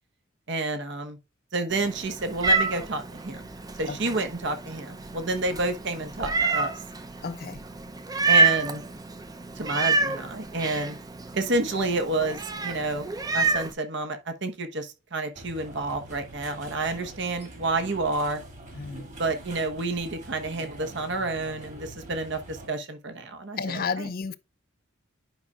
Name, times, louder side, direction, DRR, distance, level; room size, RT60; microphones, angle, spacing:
voice 1, 0.5-1.2 1.5-3.4 3.8-6.7 8.3-8.8 9.6-11.0 11.3-13.1 13.3-18.4 19.2-24.1, right 2 dB, 60° right, 1.1 m, -29 dB
Meow, 1.7-13.7, right 4 dB, 20° right, 0.6 m, -28 dB
voice 2, 7.2-7.6 18.7-19.1 23.6-24.3, left 5 dB, 45° left, 0.5 m, -32 dB
sound 1, 15.3-22.7, right 1 dB, 35° right, 2.2 m, -44 dB
10.5 x 5.5 x 2.4 m
head